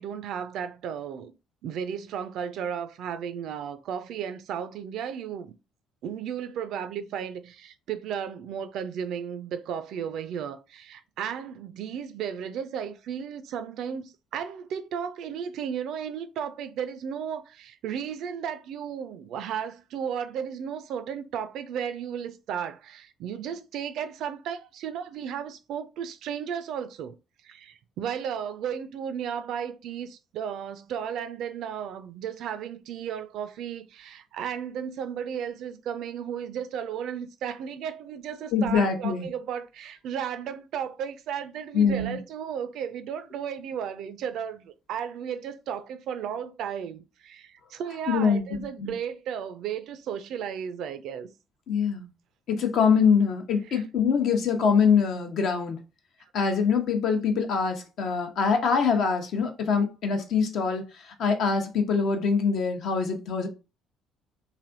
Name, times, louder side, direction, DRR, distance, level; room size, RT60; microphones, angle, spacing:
voice 1, 0.0-1.3 1.6-5.5 6.0-27.2 27.4-51.3 53.7-53.8, right 8 dB, 60° right, 0.4 m, -34 dB
voice 2, 38.5-39.3 41.7-42.2 48.1-48.4 48.8-48.9 51.7-52.1 52.5-55.8 56.3-63.5, left 6 dB, 60° left, 0.7 m, -24 dB
3.3 x 2.6 x 2.5 m
figure-of-eight pair, 50°, 0 cm